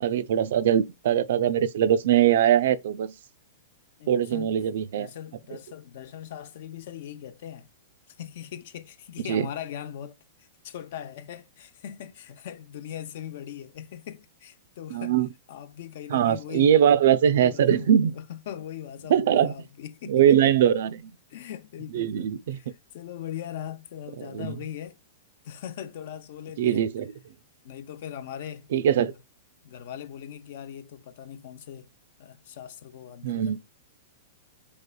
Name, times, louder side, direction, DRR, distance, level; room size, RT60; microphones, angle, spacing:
voice 1, 0.0-3.1 4.1-5.1 9.3-9.5 14.9-15.3 16.1-18.1 19.1-19.5 20.1-21.1 21.9-22.6 24.2-24.5 26.6-27.1 28.7-29.1 33.2-33.6, right 9 dB, 65° right, 0.4 m, -22 dB
voice 2, 4.0-4.5 5.0-7.7 8.1-15.2 15.5-16.7 17.4-20.5 21.3-25.0 25.4-26.8 27.6-28.7 29.1-29.2 29.6-31.9 32.2-33.6, left 10 dB, 55° left, 0.6 m, -40 dB
5.3 x 3.4 x 2.2 m
hypercardioid pair, 155°, 0 cm